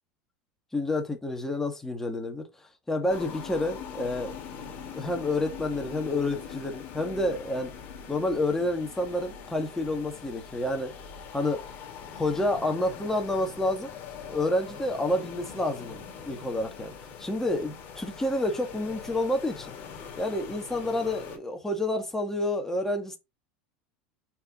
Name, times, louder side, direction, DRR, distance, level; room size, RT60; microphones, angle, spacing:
voice 1, 0.7-2.5 2.9-4.3 4.9-7.7 8.1-10.9 11.3-11.6 12.2-13.9 14.2-16.9 17.2-19.8 20.2-23.2, left 1 dB, 10° left, 1.8 m, -29 dB
sound 1, 3.1-21.4, left 7 dB, 45° left, 2.7 m, -42 dB
5.9 x 5.0 x 3.8 m
supercardioid pair, 120°, 5 cm